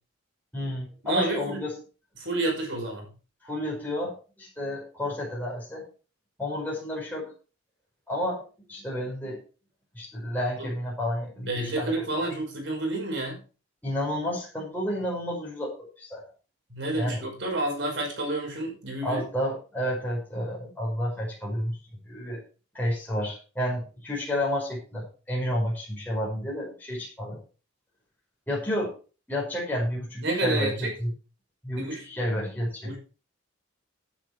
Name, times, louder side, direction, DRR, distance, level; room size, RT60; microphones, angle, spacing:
voice 1, 0.5-1.8 3.4-5.9 6.4-7.3 8.1-8.4 8.7-9.4 10.0-12.2 13.8-16.2 17.0-17.2 19.0-21.8 22.0-22.4 22.7-27.4 28.5-28.9 29.3-31.1 31.6-33.0, left 1 dB, 10° left, -5 dB, 5.3 m, -31 dB
voice 2, 1.0-1.6 2.2-3.1 10.6-10.7 11.5-13.4 16.7-19.2 30.2-30.9 31.7-32.0 32.8-33.0, right 2 dB, 60° right, 0 dB, 5.5 m, -29 dB
9.9 x 9.9 x 4.8 m, 0.34 s
head